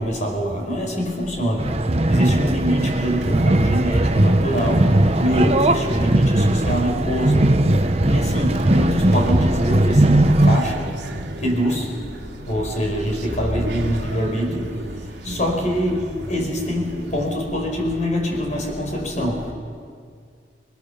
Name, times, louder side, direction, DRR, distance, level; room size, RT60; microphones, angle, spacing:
voice 1, 0.0-1.7 2.1-11.0 11.3-19.5, equal, 40° left, 1 dB, 4.9 m, -24 dB
sound 1, 1.6-10.6, right 1 dB, 35° right, 0.9 m, -18 dB
sound 2, 2.9-17.4, right 1 dB, 75° right, 2.3 m, -34 dB
28.5 x 21.0 x 7.0 m, 2.2 s
head